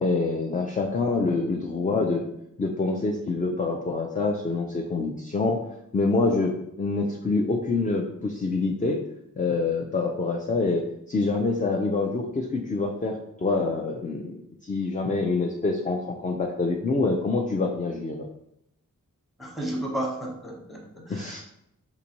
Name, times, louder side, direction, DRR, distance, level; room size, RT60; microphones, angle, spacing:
voice 1, 0.0-2.2 2.6-5.6 5.9-6.5 6.8-9.0 9.4-10.8 11.1-14.3 14.6-18.3 21.1-21.4, left 3 dB, 25° left, 1 dB, 0.4 m, -26 dB
voice 2, 19.4-21.4, right 1 dB, ahead, -2 dB, 0.9 m, -33 dB
3.9 x 2.6 x 2.9 m, 0.78 s
wide cardioid pair, 70°, 33 cm